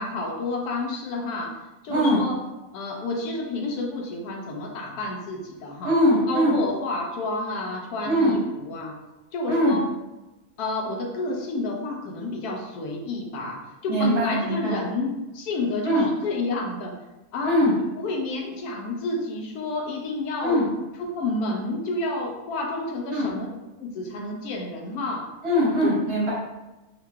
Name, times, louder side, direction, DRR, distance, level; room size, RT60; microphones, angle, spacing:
voice 1, 0.0-1.5 1.8-2.4 2.7-5.9 6.3-8.9 9.3-9.9 10.6-16.9 17.3-17.7 18.0-20.6 21.1-23.5 23.8-25.2 25.8-25.9, left 2 dB, 85° left, 1 dB, 1.1 m, -30 dB
voice 2, 1.9-2.2 5.8-6.5 8.0-8.4 9.5-9.8 13.9-14.8 15.8-16.0 17.4-17.7 20.4-20.7 23.1-23.4 25.4-26.3, equal, 55° right, -6 dB, 0.8 m, -21 dB
2.9 x 2.8 x 2.2 m, 1.0 s
omnidirectional pair, 1.6 m